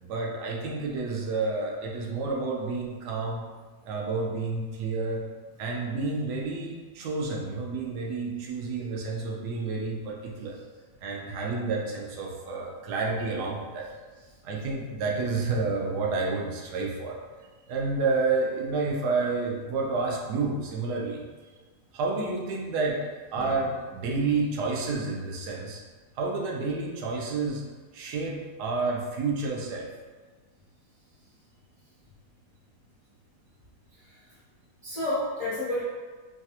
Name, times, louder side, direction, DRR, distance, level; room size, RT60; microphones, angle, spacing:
voice 1, 0.0-3.4 3.8-5.3 5.6-10.6 11.0-13.9 14.4-17.2 17.7-21.2 21.9-25.8 26.2-27.6 27.9-29.9, right 3 dB, 85° right, -1 dB, 1.2 m, -30 dB
voice 2, 33.9-34.3 34.8-35.8, left 1 dB, 60° left, -11 dB, 0.3 m, -31 dB
3.2 x 2.3 x 2.7 m, 1.4 s
omnidirectional pair, 1.7 m